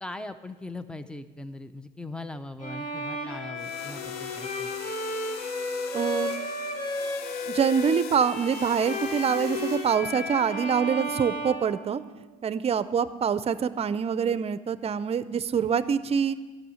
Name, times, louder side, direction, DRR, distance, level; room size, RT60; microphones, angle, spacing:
voice 1, 0.0-4.8, left 2 dB, 5° left, 11 dB, 0.6 m, -40 dB
Bowed string instrument, 2.6-12.4, left 1 dB, 45° left, 2.1 m, -33 dB
sound 1, 3.6-9.9, left 9 dB, 75° left, 0.6 m, -41 dB
voice 2, 5.9-6.3 7.5-12.0 12.4-16.4, right 7 dB, 35° right, 14 dB, 0.6 m, -25 dB
13.5 x 6.4 x 9.5 m, 1.3 s
cardioid pair, 110°, 17 cm